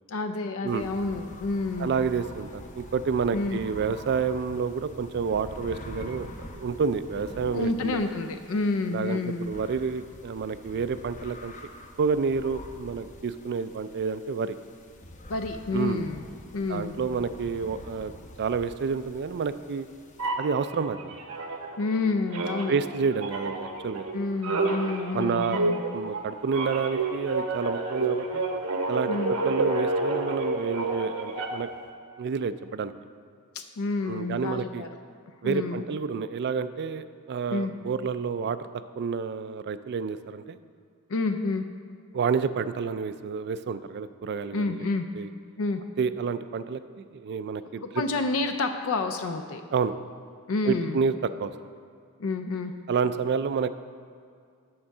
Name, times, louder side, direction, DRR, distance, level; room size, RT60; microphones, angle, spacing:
voice 1, 0.1-2.0 3.3-3.6 7.5-9.5 15.3-16.2 16.5-17.0 21.8-22.7 24.1-25.8 29.1-29.3 33.5-34.9 35.4-35.9 37.5-37.7 41.1-41.7 44.5-45.1 45.6-45.8 47.8-49.6 50.5-51.0 52.2-52.7, left 3 dB, 65° left, 7 dB, 0.5 m, -29 dB
sound 1, 0.7-20.3, left 1 dB, 35° left, 0.7 m, -46 dB
voice 2, 1.8-2.5 2.8-8.0 8.9-11.5 12.0-14.5 15.7-16.0 16.7-18.1 18.4-19.9 20.4-21.2 22.7-24.1 25.1-28.5 28.9-31.7 32.2-32.9 34.1-34.9 35.4-38.7 39.0-40.6 42.1-44.9 45.1-45.3 46.0-48.0 49.7-49.9 50.6-51.5 52.9-53.7, right 5 dB, 50° right, 12 dB, 0.3 m, -29 dB
sound 2, 20.2-22.0 22.3-31.8, right 2 dB, 80° right, 1.0 m, -30 dB
8.7 x 4.6 x 6.6 m, 2.2 s
head